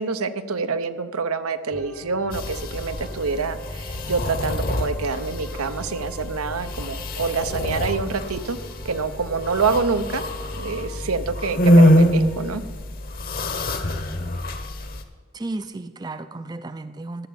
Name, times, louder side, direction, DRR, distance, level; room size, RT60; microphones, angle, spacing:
voice 1, 0.0-8.6 8.8-10.2 10.6-12.6, right 4 dB, 90° right, 11 dB, 0.8 m, -26 dB
sound 1, 1.7-12.6, left 1 dB, 5° left, 0.8 m, -40 dB
sound 2, 2.3-15.0, equal, 40° left, 1.0 m, -24 dB
voice 2, 15.3-17.3, right 2 dB, 20° right, 11 dB, 0.4 m, -33 dB
13.5 x 7.1 x 8.6 m, 1.5 s
head